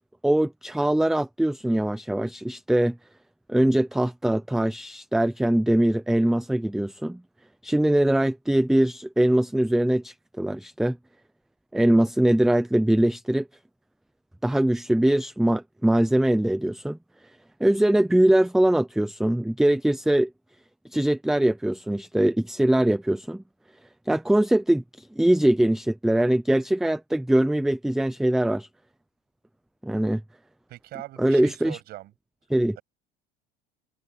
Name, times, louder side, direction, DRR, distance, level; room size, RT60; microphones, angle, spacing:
voice 1, 0.2-3.0 3.5-7.2 7.6-11.0 11.7-13.5 14.4-17.0 17.6-20.3 20.9-23.4 24.1-28.7 29.8-30.2 31.2-31.8 32.5-32.8, right 1 dB, ahead, 0.5 m, -22 dB
voice 2, 30.7-32.1, right 16 dB, 50° right, 7.5 m, -41 dB
cardioid pair, 165°, 21 cm